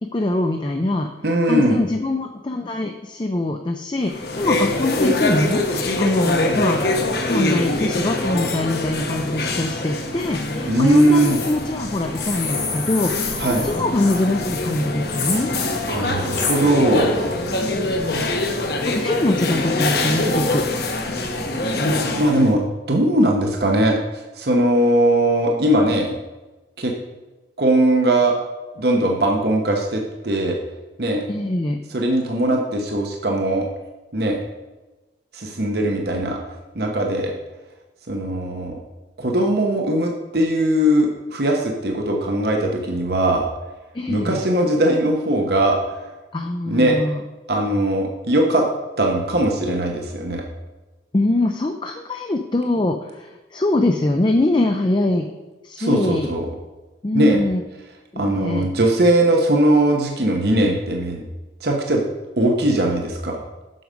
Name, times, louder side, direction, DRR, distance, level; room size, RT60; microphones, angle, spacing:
voice 1, 0.0-1.1 1.4-6.9 7.3-13.3 13.6-15.5 17.6-18.3 18.8-20.6 31.3-31.8 43.9-44.4 46.3-47.2 51.1-55.3 55.6-56.3 57.0-57.6 58.1-58.7, left 2 dB, 25° left, 4 dB, 0.5 m, -23 dB
voice 2, 1.2-1.8 10.7-11.4 13.4-13.7 15.9-17.1 22.2-22.6 22.9-24.0 24.4-26.2 26.8-26.9 27.6-28.3 28.8-30.6 31.0-31.2 31.9-33.6 34.1-34.4 35.3-36.4 36.7-37.3 38.1-38.8 39.2-43.4 44.1-45.8 46.0-46.1 46.7-47.0 47.5-48.7 49.0-50.4 55.8-56.5 57.1-57.4 58.1-61.2 61.6-62.0 62.4-63.4, right 1 dB, 55° right, 1 dB, 1.0 m, -19 dB
sound 1, 4.1-22.5, left 2 dB, 55° left, 1.0 m, -24 dB
sound 2, 10.9-11.5 12.1-14.2 15.1-15.4 16.3-16.6, left 5 dB, 75° left, 2.7 m, -28 dB
7.9 x 6.3 x 5.2 m, 1.2 s
head